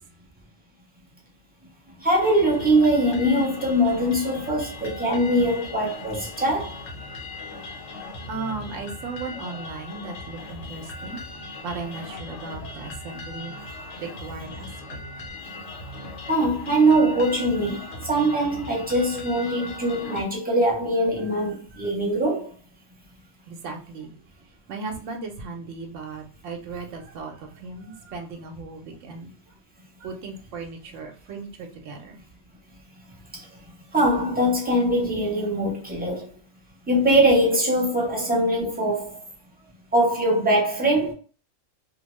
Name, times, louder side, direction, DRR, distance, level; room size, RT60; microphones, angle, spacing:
voice 1, 2.0-6.7 16.3-22.5 33.9-36.3 36.9-39.2 39.9-41.1, right 1 dB, 10° right, 0.6 m, -22 dB
sound 1, 2.2-20.2, left 2 dB, 70° left, 1.0 m, -38 dB
voice 2, 8.3-11.2 11.6-13.6 14.0-14.7 23.5-24.1 24.7-29.3 30.0-32.2, right 4 dB, 80° right, 1.0 m, -36 dB
2.7 x 2.1 x 3.0 m
omnidirectional pair, 1.3 m